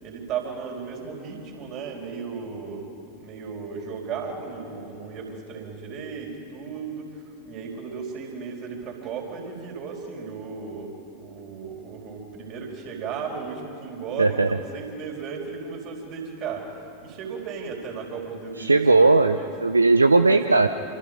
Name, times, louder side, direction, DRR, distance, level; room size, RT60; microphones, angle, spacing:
voice 1, 0.0-2.9 3.2-10.9 11.2-19.5 20.3-20.7, right 5 dB, 40° right, 1 dB, 4.9 m, -35 dB
voice 2, 14.2-14.5 18.6-20.7, right 3 dB, 80° right, 10 dB, 0.6 m, -18 dB
27.0 x 26.5 x 5.3 m, 2.8 s
figure-of-eight pair, 90°, 0 cm